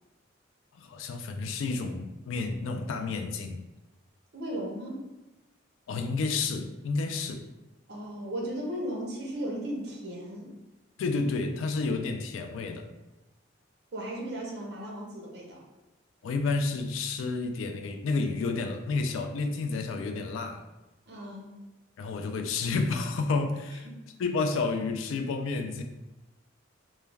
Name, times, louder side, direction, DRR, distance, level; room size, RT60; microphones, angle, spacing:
voice 1, 0.7-3.6 5.9-7.4 11.0-12.9 16.2-20.7 22.0-23.9 24.2-25.8, left 3 dB, 90° left, 6 dB, 0.3 m, -30 dB
voice 2, 4.3-5.1 7.9-10.5 13.9-15.6 21.1-21.5, right 1 dB, 55° right, -1 dB, 0.6 m, -36 dB
2.3 x 2.1 x 3.1 m, 1.0 s
head